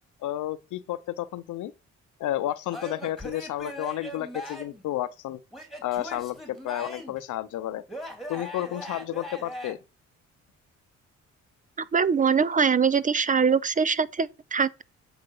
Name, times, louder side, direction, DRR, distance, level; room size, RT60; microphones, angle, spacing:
voice 1, 0.2-1.7 2.2-5.4 5.8-7.8 8.3-9.8, left 13 dB, 80° left, 0.7 m, -31 dB
Male speech man speaking / Yell / Laughter, 2.7-4.8 5.5-7.2 7.9-9.7, equal, ahead, 2.6 m, -39 dB
voice 2, 11.9-14.8, right 6 dB, 25° right, 0.5 m, -23 dB
7.9 x 4.2 x 5.4 m
cardioid pair, 90°, 30 cm